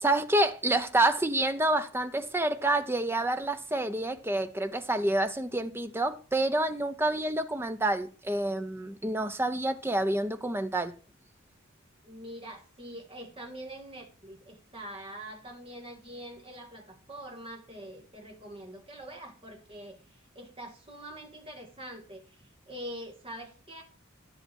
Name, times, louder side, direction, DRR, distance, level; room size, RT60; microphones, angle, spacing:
voice 1, 0.0-10.9, right 1 dB, 10° right, 0.6 m, -28 dB
voice 2, 12.0-23.8, right 1 dB, 25° right, 1.8 m, -44 dB
11.0 x 8.1 x 4.5 m
head